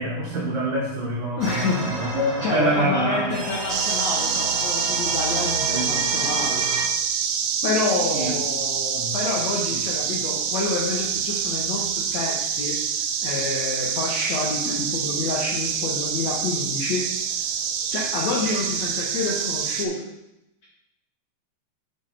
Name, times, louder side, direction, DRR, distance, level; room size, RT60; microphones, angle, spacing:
voice 1, 0.0-3.4 5.7-6.1 8.1-8.3 8.9-9.2, right 1 dB, 65° right, -5 dB, 2.6 m, -26 dB
voice 2, 1.4-1.9 2.4-6.6 7.6-12.7 13.2-17.0 17.9-19.9, left 3 dB, 85° left, -3 dB, 1.4 m, -28 dB
sound 1, 1.4-6.9, right 2 dB, 40° right, 3.0 m, -30 dB
sound 2, 3.7-19.9, right 7 dB, 85° right, 2.7 m, -26 dB
7.1 x 3.9 x 5.6 m, 0.87 s
omnidirectional pair, 4.6 m